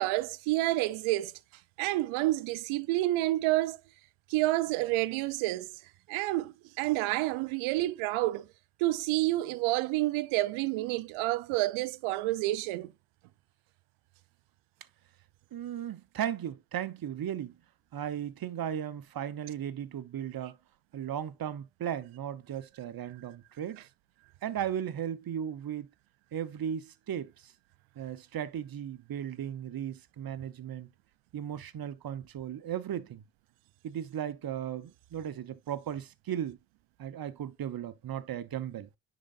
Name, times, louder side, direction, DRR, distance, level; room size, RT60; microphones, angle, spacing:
voice 1, 0.0-1.3 1.8-3.8 4.3-5.7 6.1-8.5 8.8-12.9, right 17 dB, 75° right, 0.7 m, -29 dB
voice 2, 15.5-17.6 17.9-20.6 20.9-23.8 24.4-25.9 26.3-27.5 28.0-30.9 31.3-33.2 33.8-36.6 37.0-38.9, right 9 dB, 45° right, 1.0 m, -36 dB
10.0 x 4.0 x 2.5 m
hypercardioid pair, 55°, 49 cm